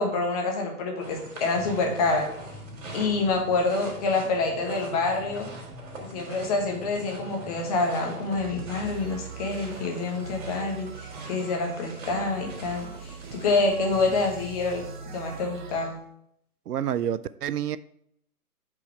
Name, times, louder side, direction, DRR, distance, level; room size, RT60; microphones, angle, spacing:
voice 1, 0.0-2.3 2.9-5.5 6.0-16.0, left 3 dB, 25° left, 1.3 m, -27 dB
sound 1, 1.0-13.7, right 3 dB, 55° right, 3.2 m, -44 dB
sound 2, 1.5-9.8, left 1 dB, 5° right, 1.8 m, -46 dB
sound 3, 8.4-15.9, right 5 dB, 30° right, 0.8 m, -41 dB
voice 2, 16.7-17.8, right 10 dB, 80° right, 0.6 m, -28 dB
7.1 x 5.0 x 4.5 m
hypercardioid pair, 150°, 46 cm